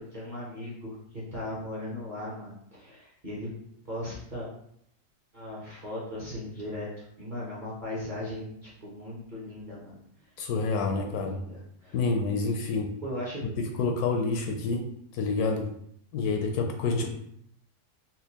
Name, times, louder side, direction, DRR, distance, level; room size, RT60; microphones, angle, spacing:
voice 1, 0.0-3.5 3.8-4.5 5.3-10.0 10.7-12.0 13.0-13.5, left 1 dB, 35° right, -6 dB, 0.8 m, -38 dB
voice 2, 10.4-11.4 11.9-12.9 13.8-14.8 15.1-15.6 16.1-17.1, left 4 dB, 75° left, 3 dB, 1.0 m, -27 dB
4.2 x 2.3 x 2.8 m, 0.69 s
omnidirectional pair, 1.7 m